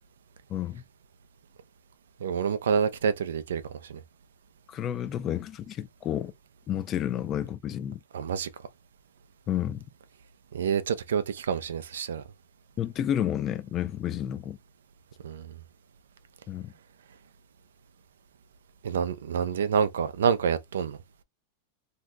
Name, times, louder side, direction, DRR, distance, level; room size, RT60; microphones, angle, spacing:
voice 1, 0.5-0.8 4.7-6.3 6.7-8.0 9.5-9.8 12.8-14.6 16.5-16.7, left 10 dB, 35° left, 0.4 m, -30 dB
voice 2, 2.2-3.6 3.9-4.0 8.1-8.5 10.5-12.2 15.2-15.5 18.8-21.0, right 7 dB, 85° right, 0.4 m, -27 dB
2.7 x 2.1 x 3.4 m
hypercardioid pair, 110°, 0 cm